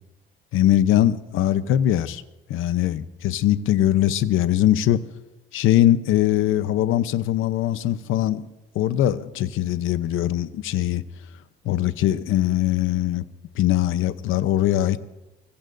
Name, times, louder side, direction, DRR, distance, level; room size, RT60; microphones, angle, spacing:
voice 1, 0.5-2.2 2.5-5.0 5.5-8.5 8.7-11.0 11.6-13.2 13.6-15.0, left 12 dB, 80° left, 13 dB, 0.8 m, -21 dB
24.5 x 22.0 x 2.6 m, 0.99 s
cardioid pair, 140°, 20 cm